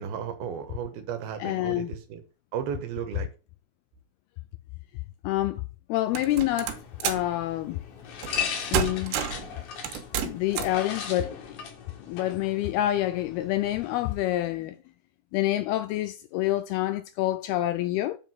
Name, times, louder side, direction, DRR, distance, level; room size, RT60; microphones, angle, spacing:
voice 1, 0.0-2.2 2.5-3.3, right 8 dB, 70° right, 2.8 m, -34 dB
voice 2, 1.4-1.9 5.2-5.6 5.9-6.7 7.0-7.8 8.7-9.2 10.2-11.6 12.0-14.8 15.3-18.2, left 14 dB, 85° left, 2.3 m, -27 dB
sound 1, 6.1-14.1, left 7 dB, 60° left, 2.9 m, -38 dB
sound 2, 6.1-7.3 8.2-8.5 8.7-9.5 9.8-10.8, right 7 dB, 90° right, 3.5 m, -29 dB
8.0 x 4.9 x 7.4 m
omnidirectional pair, 4.9 m